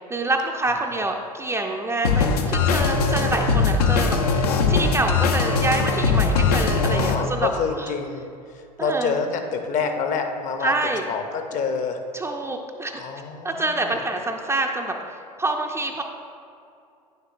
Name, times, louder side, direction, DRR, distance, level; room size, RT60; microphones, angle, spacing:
voice 1, 0.1-7.5 7.8-7.9 8.8-9.1 10.6-11.0 12.1-13.0 13.4-16.0, right 2 dB, 15° right, 2 dB, 0.5 m, -26 dB
sound 1, 2.0-7.1, left 4 dB, 70° left, 0.6 m, -21 dB
sound 2, 2.4-7.6, left 1 dB, 90° left, 1.5 m, -34 dB
voice 2, 6.3-8.2 8.5-10.7 11.1-12.0 12.9-14.0, left 5 dB, 40° left, 5 dB, 0.8 m, -28 dB
9.3 x 6.6 x 2.5 m, 2.5 s
figure-of-eight pair, 80°, 20 cm